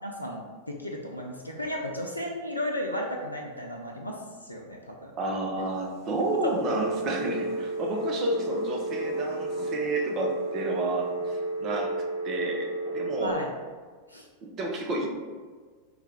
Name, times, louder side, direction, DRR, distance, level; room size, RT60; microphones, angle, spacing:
voice 1, 0.0-5.1 13.2-13.5 14.1-14.3, left 1 dB, 85° left, 0 dB, 0.3 m, -34 dB
voice 2, 5.2-13.5 14.4-15.1, right 2 dB, 35° right, 1 dB, 0.5 m, -31 dB
sound 1, 5.5-11.8, left 3 dB, 40° left, 0.6 m, -49 dB
Telephone, 6.5-13.3, right 2 dB, 90° right, 1.2 m, -32 dB
3.1 x 2.2 x 3.5 m, 1.5 s
figure-of-eight pair, 90°, 0 cm